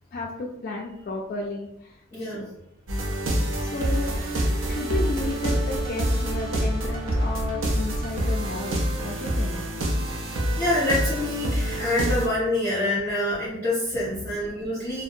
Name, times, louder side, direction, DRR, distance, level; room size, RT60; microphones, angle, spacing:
voice 1, 0.1-2.5 3.6-4.1 4.7-9.6 14.0-14.3, left 2 dB, 45° left, -2 dB, 0.3 m, -33 dB
voice 2, 2.1-2.4 10.6-15.0, left 1 dB, 10° left, -14 dB, 1.1 m, -26 dB
sound 1, 2.9-12.3, right 1 dB, 90° right, 0.5 m, -26 dB
2.6 x 2.1 x 2.4 m, 0.80 s
head